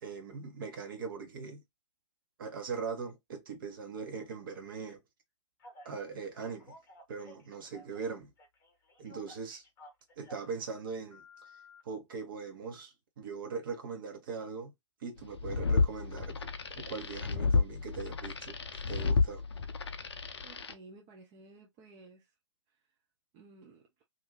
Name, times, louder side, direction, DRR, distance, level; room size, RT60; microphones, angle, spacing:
voice 1, 0.0-1.6 2.4-5.0 5.8-6.7 7.1-8.3 9.0-9.6 10.2-11.5 11.8-14.7 15.0-19.4, right 5 dB, 45° right, 1.0 m, -41 dB
Telephone, 5.6-5.9 6.4-8.1 8.4-10.5 11.1-11.8, left 1 dB, 20° left, 0.8 m, -54 dB
sound 1, 15.2-20.7, left 4 dB, 60° left, 0.5 m, -31 dB
voice 2, 20.4-22.3 23.3-23.9, right 3 dB, 20° right, 0.5 m, -54 dB
2.6 x 2.5 x 3.0 m
figure-of-eight pair, 120°, 16 cm